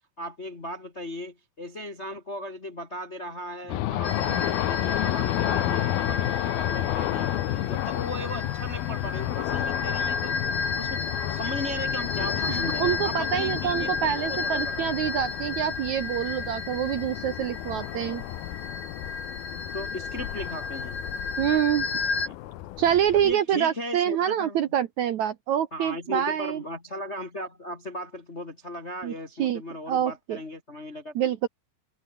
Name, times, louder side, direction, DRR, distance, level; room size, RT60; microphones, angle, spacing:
voice 1, 0.2-10.4 10.8-11.0 11.3-13.9 14.3-14.9 19.7-21.0 22.2-22.3 23.1-24.6 25.7-31.3, left 1 dB, 30° left, 1.2 m, -37 dB
sound 1, 3.7-23.3, left 15 dB, 80° left, 3.0 m, -31 dB
sound 2, 4.0-22.3, left 4 dB, 55° left, 7.5 m, -33 dB
voice 2, 12.5-18.2 21.4-21.9 22.8-26.6 29.0-29.1 29.4-29.6 29.9-30.4 31.2-31.5, right 10 dB, 70° right, 1.9 m, -26 dB
omnidirectional pair, 4.4 m